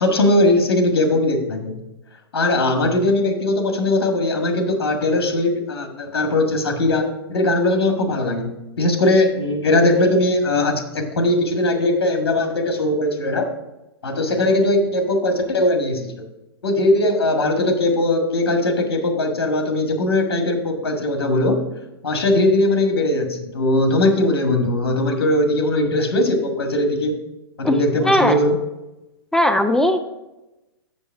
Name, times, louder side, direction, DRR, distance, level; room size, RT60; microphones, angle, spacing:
voice 1, 0.0-1.8 2.3-13.5 14.0-16.2 16.6-21.6 22.0-27.2 27.6-28.6, left 1 dB, 80° left, 3 dB, 1.6 m, -19 dB
voice 2, 28.1-28.4 29.3-30.0, left 1 dB, 5° left, 7 dB, 0.3 m, -17 dB
7.6 x 5.3 x 4.6 m, 0.98 s
hypercardioid pair, 130°, 13 cm